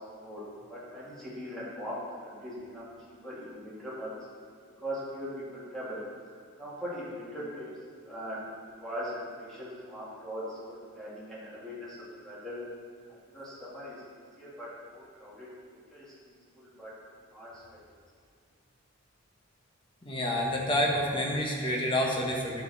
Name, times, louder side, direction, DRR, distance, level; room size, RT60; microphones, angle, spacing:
voice 1, 0.7-4.1 4.8-6.0 6.6-7.7 8.0-8.4 8.8-12.0 12.2-12.6 13.3-15.5 15.9-16.9 17.3-17.8, equal, ahead, -10 dB, 2.1 m, -40 dB
voice 2, 20.0-22.6, equal, 20° left, -1 dB, 1.2 m, -28 dB
10.5 x 6.6 x 4.1 m, 2.1 s
head